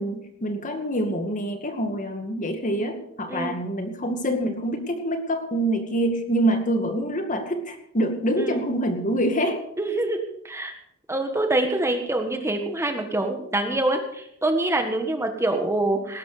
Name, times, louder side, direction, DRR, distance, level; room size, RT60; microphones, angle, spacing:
voice 1, 0.0-9.6, right 1 dB, 35° left, 6 dB, 2.2 m, -26 dB
voice 2, 9.8-10.7 11.1-16.2, right 2 dB, 10° right, 5 dB, 1.5 m, -25 dB
19.0 x 11.5 x 5.0 m, 0.71 s
head